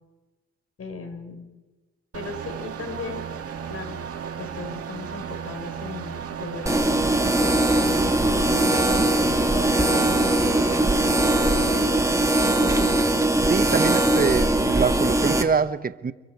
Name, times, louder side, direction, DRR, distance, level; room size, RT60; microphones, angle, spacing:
voice 1, 0.8-1.5 2.1-3.3 3.7-4.0 4.3-10.9 13.4-13.5, left 4 dB, 50° left, 5.1 m, -37 dB
sound 1, 2.1-12.1, right 7 dB, 50° right, 2.0 m, -35 dB
sound 2, 6.7-15.4, right 1 dB, 10° right, 2.5 m, -21 dB
voice 2, 13.5-16.1, right 5 dB, 30° right, 1.1 m, -25 dB
29.0 x 24.0 x 4.8 m
cardioid pair, 90°, 30 cm